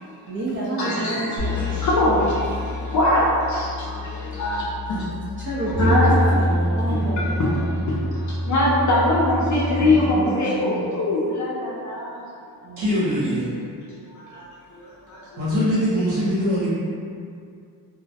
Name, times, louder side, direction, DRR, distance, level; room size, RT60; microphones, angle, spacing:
voice 1, 0.3-1.9 4.3-4.4 5.4-7.6 9.7-10.9 12.6-13.0 15.2-15.4, right 1 dB, 35° right, -7 dB, 0.4 m, -29 dB
voice 2, 0.8-5.1 5.8-6.2 7.2-7.5 7.9-12.2 14.1-14.5 14.7-15.4, left 1 dB, 50° left, -6 dB, 0.4 m, -23 dB
sound 1, 1.4-10.1, equal, 55° right, 1.0 m, -26 dB
voice 3, 12.8-13.5 15.4-16.7, equal, 80° right, -10 dB, 0.8 m, -22 dB
2.3 x 2.0 x 2.6 m, 2.3 s
cardioid pair, 115°, 40 cm